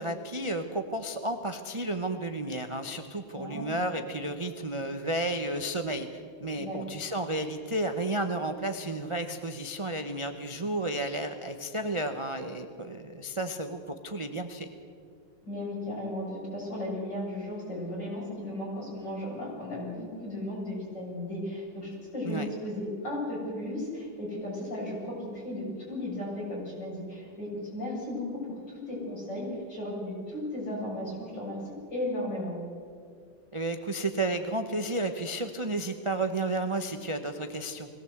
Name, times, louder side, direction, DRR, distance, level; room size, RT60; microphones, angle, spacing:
voice 1, 0.0-6.1 6.4-14.7 22.2-22.5 33.5-37.9, right 1 dB, 35° right, 6 dB, 0.5 m, -32 dB
voice 2, 3.3-3.8 6.5-6.8 15.4-28.4 28.7-32.6, left 1 dB, 55° left, -4 dB, 7.9 m, -35 dB
21.5 x 17.0 x 8.0 m, 2.2 s
omnidirectional pair, 2.2 m